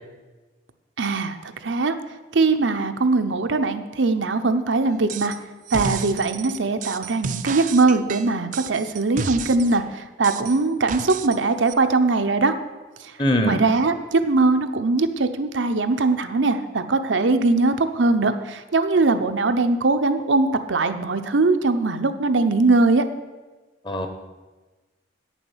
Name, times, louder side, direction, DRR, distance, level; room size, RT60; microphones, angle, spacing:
voice 1, 1.0-1.4 1.6-1.9 2.3-5.3 5.7-12.5 13.5-23.0, right 3 dB, 80° right, 7 dB, 0.7 m, -21 dB
sound 1, 5.1-5.4 5.7-9.8 10.2-11.4 11.7-11.8, right 5 dB, 45° right, 0.5 m, -32 dB
voice 2, 13.2-13.6 23.8-24.1, equal, 25° left, 6 dB, 1.0 m, -21 dB
8.9 x 7.2 x 7.2 m, 1.2 s
head